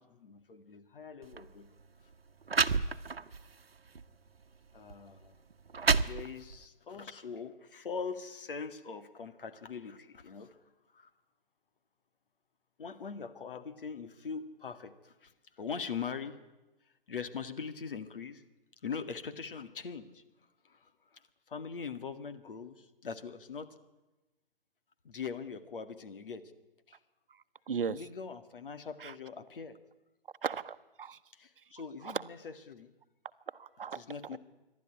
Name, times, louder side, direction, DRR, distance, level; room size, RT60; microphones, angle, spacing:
voice 1, 0.0-1.7 4.7-5.3 6.0-10.6 10.9-11.1 12.8-16.4 17.1-18.4 18.8-20.2 20.6-23.8 25.0-26.5 26.9-27.0 27.8-29.8 31.3-32.9 33.9-34.4, left 5 dB, 65° left, 9 dB, 2.0 m, -42 dB
sound 1, 1.2-1.4 2.1-2.2 2.5-3.4 4.0-4.1 4.9-5.0 5.5-6.6, right 5 dB, 90° right, 1.0 m, -29 dB
voice 2, 27.7-28.0 29.0-29.1 30.4-31.2 32.0-32.2 33.5-34.0 34.3-34.4, right 6 dB, 65° right, 14 dB, 1.0 m, -36 dB
28.0 x 12.0 x 9.9 m, 1.1 s
hypercardioid pair, 145°, 29 cm